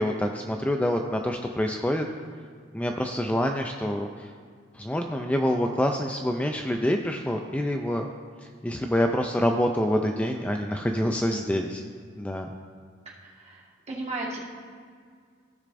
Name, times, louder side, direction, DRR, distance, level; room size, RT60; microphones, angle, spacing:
voice 1, 0.0-2.1 2.7-4.3 4.7-8.1 8.6-11.8 12.2-12.5, equal, 5° left, 3 dB, 0.3 m, -26 dB
voice 2, 13.0-14.4, right 2 dB, 35° right, -4 dB, 1.6 m, -36 dB
15.5 x 6.5 x 2.6 m, 2.1 s
head